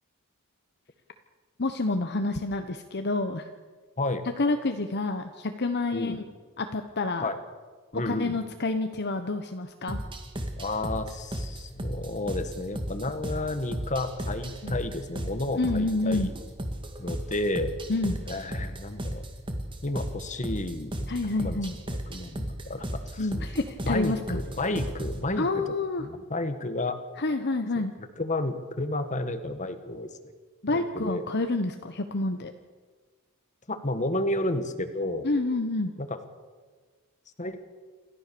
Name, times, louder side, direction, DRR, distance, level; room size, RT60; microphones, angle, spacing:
voice 1, 1.6-3.5 4.4-6.2 6.6-7.3 7.9-10.0 14.6-14.8 15.5-16.3 17.9-18.2 21.1-21.7 23.2-24.4 25.4-26.1 27.2-27.9 30.6-32.5 35.2-35.9, left 2 dB, 50° left, 7 dB, 1.1 m, -28 dB
voice 2, 7.9-8.4 10.6-16.3 17.0-17.7 18.3-19.2 19.8-21.1 21.4-21.6 22.1-23.3 23.9-27.0 27.8-30.1 30.7-31.2 33.7-35.3 36.0-36.2 37.4-37.6, left 2 dB, 35° left, 9 dB, 1.6 m, -31 dB
sound 1, 9.9-25.2, equal, 20° right, 2.1 m, -35 dB
27.5 x 14.0 x 6.9 m, 1.5 s
head